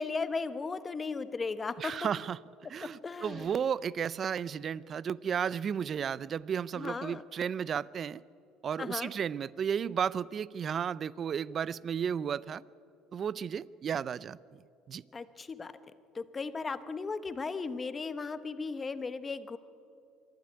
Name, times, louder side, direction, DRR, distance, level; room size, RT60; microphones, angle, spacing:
voice 1, 0.0-1.9 2.8-3.5 6.8-7.2 8.8-9.1 15.1-15.7 16.1-19.6, left 4 dB, 25° left, 1.0 m, -36 dB
voice 2, 1.8-2.4 2.7-8.2 8.6-12.6 13.1-14.4 14.9-15.0, right 7 dB, 40° right, 0.4 m, -33 dB
25.5 x 12.0 x 9.6 m
cardioid pair, 115°, 0 cm